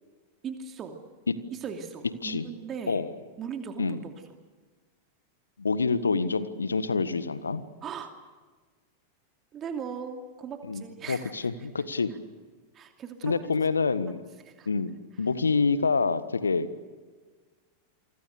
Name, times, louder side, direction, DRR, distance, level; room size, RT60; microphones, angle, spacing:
voice 1, 0.4-1.0 1.5-3.0 3.4-4.1 7.8-8.1 9.5-11.3 12.7-13.6 14.4-14.7, right 7 dB, 25° right, 5 dB, 2.7 m, -38 dB
voice 2, 5.6-7.6 10.7-12.1 13.2-14.2 14.6-14.9 15.2-16.7, left 4 dB, 75° left, 14 dB, 1.5 m, -27 dB
28.5 x 24.5 x 6.8 m, 1.4 s
figure-of-eight pair, 90°, 0 cm